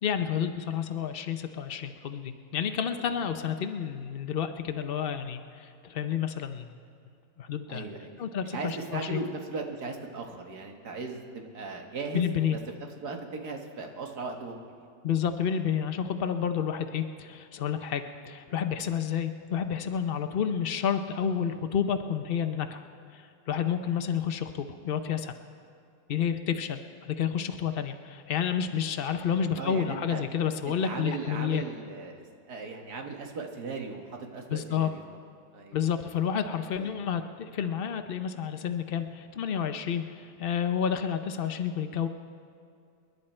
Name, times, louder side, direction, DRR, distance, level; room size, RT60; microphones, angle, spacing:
voice 1, 0.0-6.7 7.4-7.9 8.2-9.2 12.1-12.6 15.0-22.8 23.1-25.3 26.1-31.6 34.5-34.9 35.7-42.1, left 8 dB, 85° left, 7 dB, 0.5 m, -30 dB
voice 2, 7.7-8.1 8.5-14.6 29.6-30.2 30.7-35.0 35.5-35.8 36.8-37.0, right 3 dB, 60° right, 3 dB, 2.0 m, -38 dB
28.5 x 11.0 x 4.4 m, 2.4 s
omnidirectional pair, 2.0 m